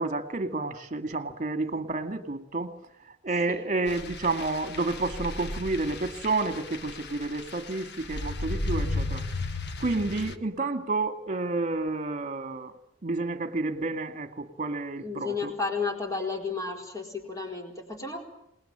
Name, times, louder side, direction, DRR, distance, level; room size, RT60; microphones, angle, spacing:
voice 1, 0.0-2.7 3.2-9.2 9.8-12.7 13.0-15.5, right 3 dB, 35° right, 8 dB, 2.1 m, -30 dB
sound 1, 3.9-10.4, left 2 dB, 55° left, 1.5 m, -35 dB
voice 2, 15.0-18.2, left 4 dB, 15° left, 2 dB, 4.5 m, -32 dB
27.5 x 20.0 x 8.8 m, 0.77 s
head